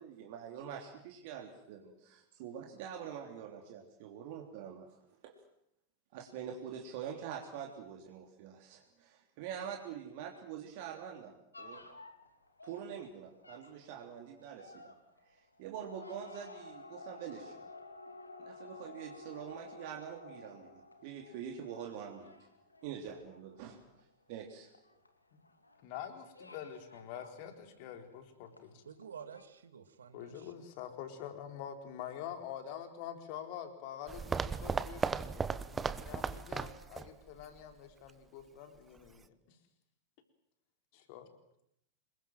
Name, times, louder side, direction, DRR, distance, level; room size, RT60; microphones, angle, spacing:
voice 1, 0.0-5.0 5.2-5.3 6.1-11.9 12.6-14.9 15.3-17.7 18.4-22.3 22.8-23.8 24.3-24.7, right 8 dB, 50° right, 2 dB, 3.3 m, -45 dB
sound 1, 11.5-28.2 28.5-29.1 29.3-29.4, left 3 dB, 80° left, 2.9 m, -53 dB
voice 2, 25.8-28.8 30.1-35.4 35.7-39.6 40.9-41.2, left 9 dB, 45° left, 6 dB, 4.1 m, -46 dB
voice 3, 28.8-30.5, right 7 dB, 70° right, 10 dB, 2.3 m, -50 dB
sound 2, 34.1-37.1 37.4-37.5 38.1-38.2, right 5 dB, 15° right, 1.1 m, -36 dB
27.0 x 22.0 x 7.8 m, 0.77 s
figure-of-eight pair, 90°, 0 cm